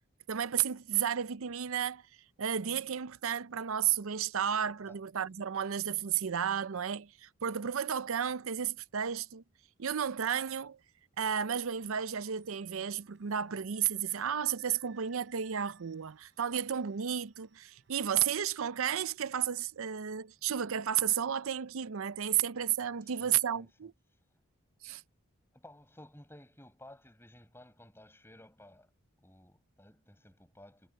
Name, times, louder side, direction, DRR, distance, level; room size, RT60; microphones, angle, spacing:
voice 1, 0.3-2.0 2.4-9.4 9.8-10.8 11.2-23.9 24.8-25.0, right 9 dB, 75° right, 0.6 m, -32 dB
sound 1, 11.7-20.3, right 9 dB, 55° right, 7.8 m, -66 dB
voice 2, 23.0-23.9 25.5-28.9 29.2-30.9, left 1 dB, 10° left, 7.4 m, -55 dB
head